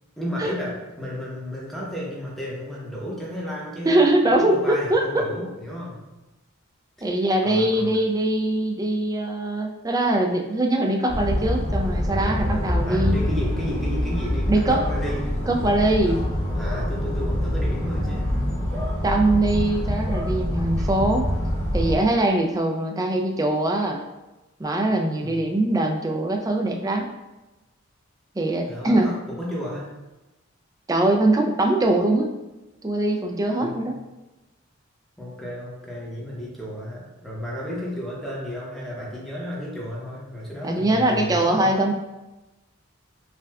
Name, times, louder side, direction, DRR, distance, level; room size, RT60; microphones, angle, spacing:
voice 1, 0.2-4.0 4.3-6.0 7.0-7.1 7.4-7.9 12.8-15.4 16.0-16.2 16.5-18.3 25.2-25.4 28.6-29.9 33.6-33.9 35.2-41.7, equal, ahead, -5 dB, 0.9 m, -33 dB
voice 2, 3.9-5.2 7.0-13.2 14.5-14.8 15.5-16.2 19.0-21.3 21.7-24.0 24.6-27.0 28.4-29.1 30.9-32.3 32.8-34.0 40.6-41.9, right 1 dB, 20° right, 2 dB, 0.4 m, -22 dB
sound 1, 11.1-22.0, equal, 35° left, 1.4 m, -25 dB
5.8 x 2.3 x 2.3 m, 1.0 s
head